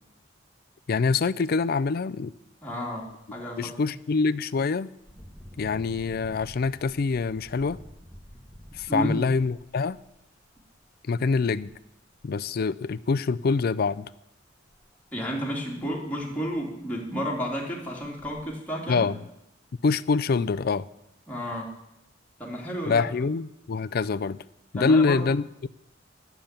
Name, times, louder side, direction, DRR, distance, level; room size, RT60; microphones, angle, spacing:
voice 1, 0.9-2.3 3.6-4.9 5.6-7.8 8.7-10.0 11.1-11.7 12.2-14.1 18.9-19.2 19.8-20.9 22.9-24.4 24.7-25.7, left 4 dB, 55° left, 17 dB, 0.4 m, -25 dB
voice 2, 2.6-3.7 8.9-9.2 15.1-19.0 21.3-21.8 22.4-23.1 24.7-25.3, equal, 10° left, -3 dB, 2.6 m, -31 dB
Engine, 2.9-3.1 3.6-3.8 5.0-10.8 11.7-11.8 12.2-12.9 14.7-14.8 15.2-15.3 15.8-15.9 16.2-16.7 17.3-17.4 18.0-18.4, equal, 10° right, 1.8 m, -48 dB
9.9 x 7.0 x 8.9 m, 0.84 s
head